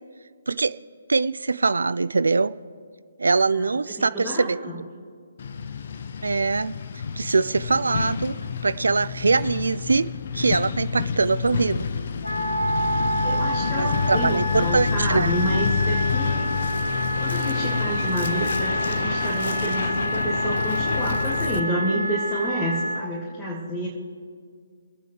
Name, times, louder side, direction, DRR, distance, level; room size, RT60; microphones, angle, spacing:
voice 1, 1.1-2.5 3.2-4.6 6.2-6.7 7.2-8.3 8.6-10.1 10.3-11.9 13.8-15.3, right 4 dB, 70° right, 16 dB, 0.4 m, -22 dB
voice 2, 4.0-4.8 13.2-16.6 17.2-23.9, equal, 5° left, -7 dB, 2.4 m, -29 dB
Truck, 5.4-21.6, left 6 dB, 50° left, 0.7 m, -28 dB
Wind instrument woodwind instrument, 12.2-23.1, right 1 dB, 90° left, 1.3 m, -28 dB
26.0 x 9.1 x 3.3 m, 2.1 s
figure-of-eight pair, 140°, 0 cm